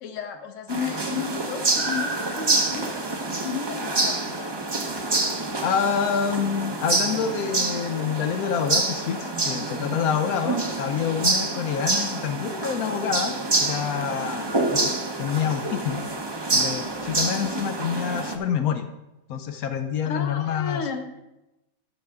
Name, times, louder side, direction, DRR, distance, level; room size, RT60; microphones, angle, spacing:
voice 1, 0.0-2.9 3.4-4.5 20.0-21.1, left 6 dB, 65° left, 7 dB, 1.2 m, -33 dB
sound 1, 0.7-18.4, right 2 dB, 25° right, 0.6 m, -27 dB
voice 2, 5.6-14.9 15.2-16.0 16.5-18.8 19.3-20.8, left 7 dB, 85° left, 7 dB, 1.1 m, -27 dB
13.0 x 6.5 x 3.5 m, 0.96 s
omnidirectional pair, 1.5 m